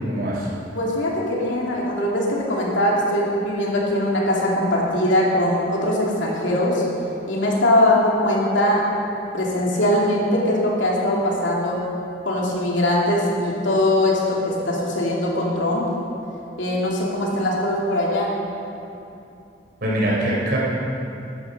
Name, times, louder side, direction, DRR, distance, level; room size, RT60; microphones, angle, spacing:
voice 1, 0.1-0.5 19.8-20.6, right 1 dB, 55° right, -5 dB, 3.9 m, -22 dB
voice 2, 0.7-6.8 7.3-8.9 9.3-11.9 12.2-15.8 16.6-18.4, left 1 dB, 80° left, -4 dB, 2.8 m, -21 dB
13.5 x 11.5 x 5.4 m, 2.8 s
head